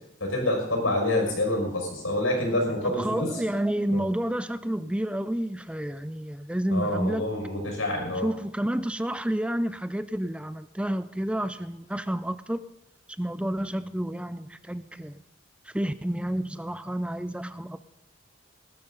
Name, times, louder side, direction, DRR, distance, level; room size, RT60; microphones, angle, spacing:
voice 1, 0.2-3.3 3.9-4.0 6.7-8.3, left 1 dB, 85° left, 6.1 m, -27 dB
voice 2, 2.8-7.2 8.2-12.6 13.2-15.2 15.7-17.8, right 1 dB, 5° right, 0.4 m, -30 dB
19.0 x 12.5 x 4.0 m
head